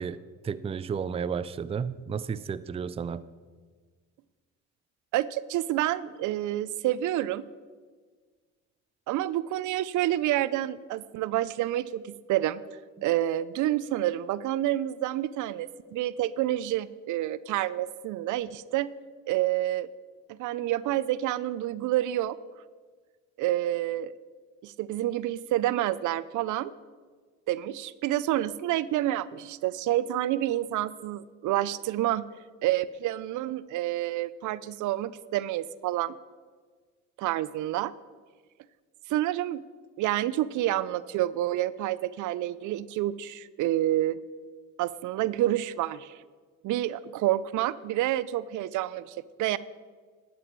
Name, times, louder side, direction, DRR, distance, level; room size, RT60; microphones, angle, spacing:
voice 1, 0.0-3.2, right 6 dB, 20° right, 14 dB, 0.3 m, -33 dB
voice 2, 5.1-7.4 9.1-12.6 13.0-18.9 19.3-19.9 20.3-22.4 23.4-24.1 24.6-26.7 27.5-32.3 32.6-36.1 37.2-37.9 39.1-39.6 40.0-44.2 44.8-46.2 46.6-49.6, right 14 dB, 80° right, 17 dB, 0.5 m, -28 dB
12.0 x 7.7 x 4.5 m, 1.5 s
cardioid pair, 90°, 30 cm